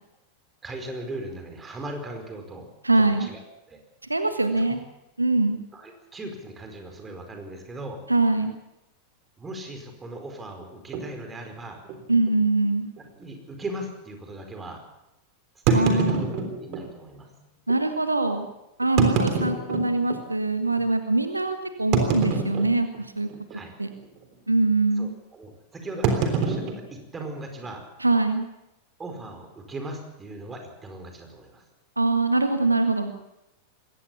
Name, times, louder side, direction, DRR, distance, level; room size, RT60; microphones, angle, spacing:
voice 1, 0.6-2.7 2.9-3.4 3.7-3.8 5.7-8.0 9.4-11.8 13.2-14.8 15.7-17.3 23.5-23.7 25.0-27.9 29.0-31.6, right 1 dB, 15° right, 4 dB, 4.9 m, -38 dB
voice 2, 2.8-3.3 4.1-4.8 5.2-5.6 8.1-8.5 12.1-12.9 15.7-16.3 17.7-18.5 18.8-23.3 23.8-23.9 24.5-25.1 28.0-28.5 32.0-33.1, right 2 dB, 85° right, 8 dB, 1.5 m, -23 dB
sound 1, 10.9-11.1 11.8-12.0 12.3-12.4 13.0-13.1 15.7-16.9 17.7-17.8 18.8-20.2 20.8-20.9 21.9-23.0 23.3-23.7 23.9-24.2 26.0-27.7, right 4 dB, 40° right, 3.5 m, -25 dB
21.5 x 18.0 x 7.2 m, 0.89 s
figure-of-eight pair, 90°, 0 cm